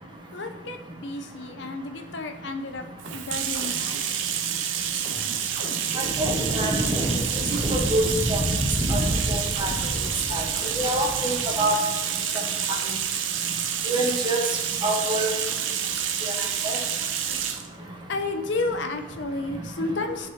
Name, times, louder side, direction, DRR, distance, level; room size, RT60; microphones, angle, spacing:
voice 1, 0.3-2.9 3.1-4.1 18.1-20.3, left 2 dB, 70° left, 6 dB, 0.6 m, -31 dB
sound 1, 3.0-11.3, equal, 50° right, 1.3 m, -42 dB
Bathtub (filling or washing), 3.0-17.7, right 8 dB, 85° right, 0.5 m, -28 dB
sound 2, 6.0-11.6, equal, 10° right, 0.6 m, -28 dB
voice 2, 6.0-6.7 7.4-8.0 8.3-8.4 8.9-9.0 9.3-9.7 10.3-10.4 10.8-11.7 13.9-14.4 14.8-15.3 16.6-16.8, right 1 dB, 25° right, -1 dB, 1.1 m, -26 dB
10.5 x 4.7 x 2.8 m, 1.1 s
head